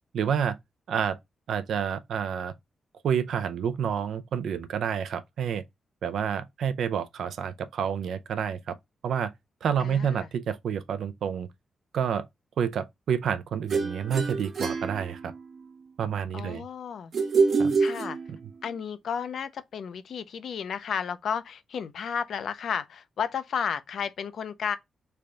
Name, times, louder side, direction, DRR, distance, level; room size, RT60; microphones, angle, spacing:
voice 1, 0.1-0.6 0.9-1.2 1.5-2.5 3.0-5.6 6.0-8.8 9.0-9.3 9.6-11.5 11.9-12.3 12.6-15.3 16.0-16.6 17.6-17.7 18.3-18.4, right 8 dB, 85° right, 0.4 m, -29 dB
voice 2, 9.8-10.3 16.3-17.1 17.8-18.2 18.6-24.8, left 7 dB, 75° left, 0.4 m, -32 dB
sound 1, 13.7-15.6 17.1-18.7, right 4 dB, 70° right, 1.0 m, -26 dB
3.3 x 2.2 x 3.8 m
cardioid pair, 95°, 0 cm